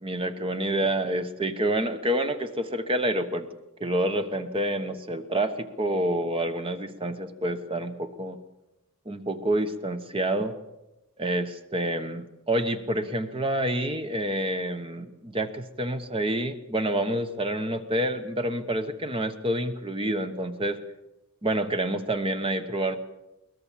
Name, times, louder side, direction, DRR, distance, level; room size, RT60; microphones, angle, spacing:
voice 1, 0.0-3.5 3.8-8.4 9.1-10.5 11.2-20.8 21.4-23.0, right 1 dB, 25° right, 8 dB, 1.1 m, -28 dB
22.5 x 19.5 x 7.4 m, 0.96 s
head